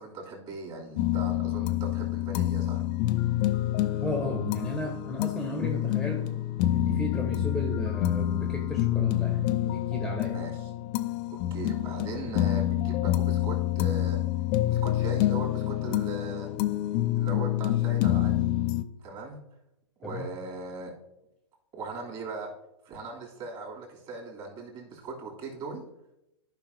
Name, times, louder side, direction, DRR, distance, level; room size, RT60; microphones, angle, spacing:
voice 1, 0.0-2.8 10.3-10.7 11.3-14.2 14.7-16.5 17.1-18.5 19.0-19.4 20.0-20.9 21.7-22.5 22.8-25.8, right 3 dB, 30° right, -2 dB, 3.1 m, -39 dB
sound 1, 1.0-18.8, left 14 dB, 40° left, 0.6 m, -27 dB
voice 2, 4.0-6.2 6.7-10.4 20.0-20.3, left 1 dB, 5° left, 1 dB, 1.1 m, -34 dB
14.0 x 5.5 x 2.8 m, 0.87 s
hypercardioid pair, 115°, 16 cm